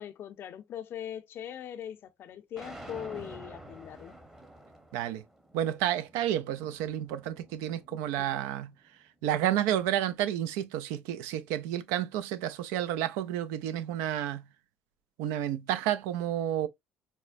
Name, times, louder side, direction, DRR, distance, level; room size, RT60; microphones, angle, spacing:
voice 1, 0.0-4.2 7.9-8.3, left 10 dB, 55° left, 0.5 m, -41 dB
sound 1, 2.6-8.7, right 1 dB, 10° right, 0.8 m, -50 dB
voice 2, 4.9-5.2 5.5-8.7 9.2-14.4 15.2-16.7, right 11 dB, 90° right, 0.4 m, -30 dB
4.2 x 2.1 x 2.4 m
cardioid pair, 95°, 4 cm